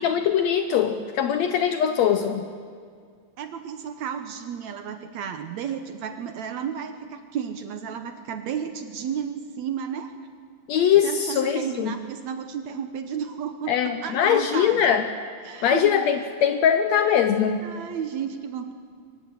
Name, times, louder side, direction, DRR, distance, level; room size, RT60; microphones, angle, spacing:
voice 1, 0.0-2.5 10.7-11.9 13.7-15.1 15.6-17.7, left 8 dB, 80° left, 8 dB, 1.5 m, -22 dB
voice 2, 3.4-10.1 11.0-15.0 15.4-16.1 17.6-18.7, right 8 dB, 70° right, 8 dB, 1.9 m, -33 dB
24.0 x 15.5 x 9.4 m, 2.1 s
omnidirectional pair, 4.1 m